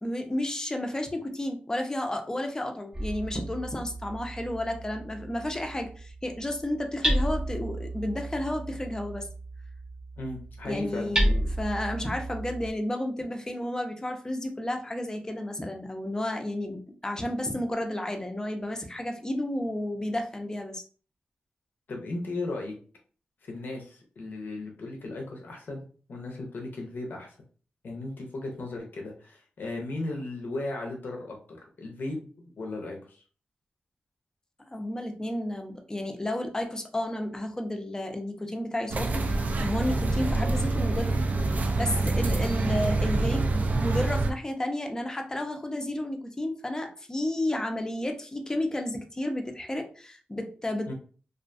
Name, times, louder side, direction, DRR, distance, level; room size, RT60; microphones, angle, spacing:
voice 1, 0.0-9.3 10.6-20.8 34.7-41.2 41.8-43.4 43.8-50.9, left 1 dB, 20° left, 4 dB, 0.5 m, -32 dB
Hammer, 2.9-12.7, right 1 dB, 20° right, 0.7 m, -32 dB
voice 2, 10.2-11.5 21.9-22.7 23.4-27.4 27.8-33.2 42.6-42.8 50.8-50.9, left 2 dB, 75° left, 0 dB, 0.6 m, -36 dB
sound 1, 38.9-44.3, right 2 dB, 55° right, 0.3 m, -26 dB
2.4 x 2.2 x 2.5 m, 0.41 s
cardioid pair, 75°, 3 cm